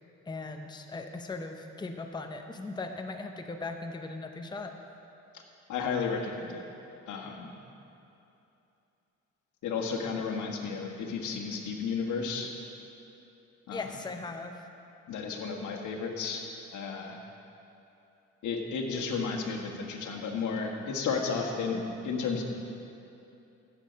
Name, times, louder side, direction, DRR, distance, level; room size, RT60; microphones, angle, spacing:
voice 1, 0.3-4.7 13.7-14.6, left 3 dB, 15° left, 5 dB, 0.7 m, -38 dB
voice 2, 5.7-6.6 7.0-7.5 9.6-12.5 13.7-13.8 15.1-16.4 16.7-17.2 18.4-22.4, left 5 dB, 75° left, 2 dB, 1.5 m, -33 dB
15.0 x 7.5 x 5.2 m, 2.8 s
cardioid pair, 90°, 30 cm